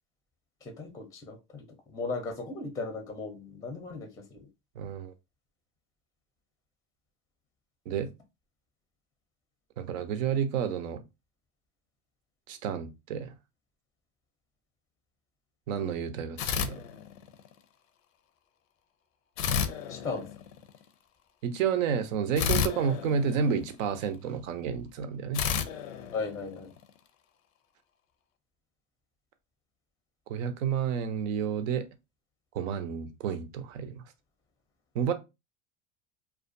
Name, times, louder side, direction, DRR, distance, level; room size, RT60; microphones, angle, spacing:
voice 1, 0.6-4.5 19.9-20.3 26.1-26.7, left 4 dB, 10° left, 0.5 m, -37 dB
voice 2, 4.8-5.1 7.9-8.1 9.8-11.0 12.5-13.3 15.7-16.8 21.4-25.4 30.3-31.9 32.5-34.0 34.9-35.1, right 7 dB, 80° right, 0.6 m, -30 dB
sound 1, 16.4-17.5 19.4-20.8 22.4-24.1 25.3-26.9, left 7 dB, 85° left, 0.5 m, -32 dB
2.4 x 2.2 x 2.5 m
hypercardioid pair, 100°, 38 cm